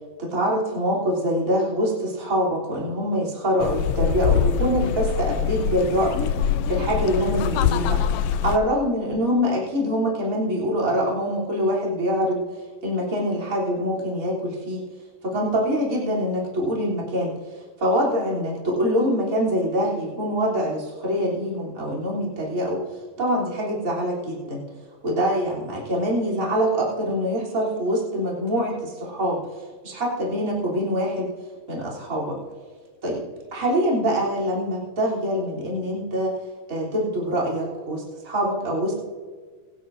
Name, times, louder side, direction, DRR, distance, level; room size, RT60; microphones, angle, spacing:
voice 1, 0.2-8.0 8.4-12.4 12.8-14.8 15.2-22.8 23.2-24.6 25.0-29.4 29.8-31.3 31.7-32.4 33.0-33.2 33.5-36.4 36.7-39.0, equal, 25° right, -4 dB, 3.5 m, -24 dB
sound 1, 3.6-8.6, left 8 dB, 90° left, 1.3 m, -24 dB
22.5 x 10.5 x 2.6 m, 1.5 s
omnidirectional pair, 3.4 m